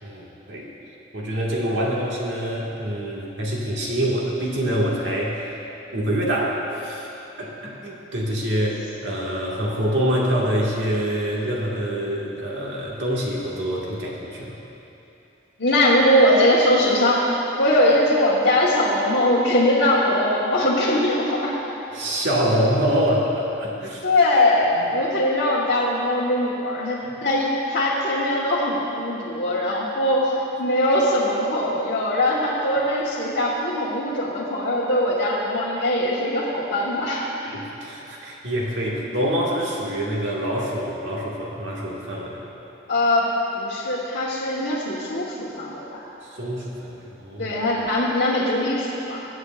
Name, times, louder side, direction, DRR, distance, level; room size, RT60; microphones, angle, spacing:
voice 1, 0.0-0.7 1.1-5.6 5.9-7.1 7.4-14.6 21.9-24.0 24.7-24.9 27.0-27.1 37.4-42.4 46.2-47.6, equal, 80° right, -4 dB, 1.7 m, -25 dB
voice 2, 15.6-17.2 17.6-21.6 24.0-30.3 30.6-37.2 42.9-43.3 43.5-46.0 47.4-49.3, left 1 dB, 75° left, -8 dB, 1.2 m, -21 dB
19.5 x 8.0 x 2.4 m, 3.0 s
head